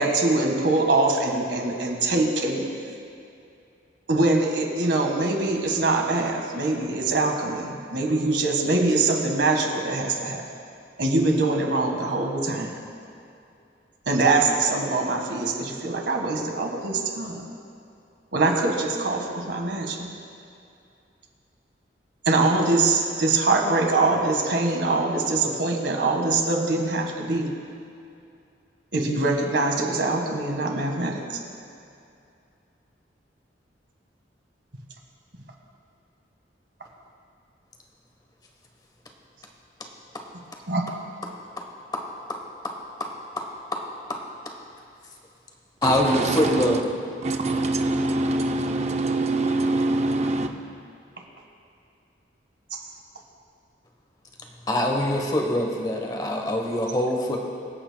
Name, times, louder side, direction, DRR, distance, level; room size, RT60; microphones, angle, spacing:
voice 1, 0.0-2.7 4.1-10.4 11.0-12.7 14.0-17.4 18.3-20.1 22.2-27.5 28.9-31.4 40.7-40.8, right 2 dB, 75° right, 1 dB, 1.6 m, -23 dB
voice 2, 41.9-42.4 42.6-42.7 43.0-43.1 43.4-43.8 44.1-44.2 45.8-46.8 54.7-57.4, left 1 dB, 20° left, 1 dB, 1.1 m, -25 dB
voice 3, 45.8-46.8 47.2-50.5, right 2 dB, 35° right, 4 dB, 0.6 m, -24 dB
25.0 x 8.5 x 2.3 m, 2.6 s
head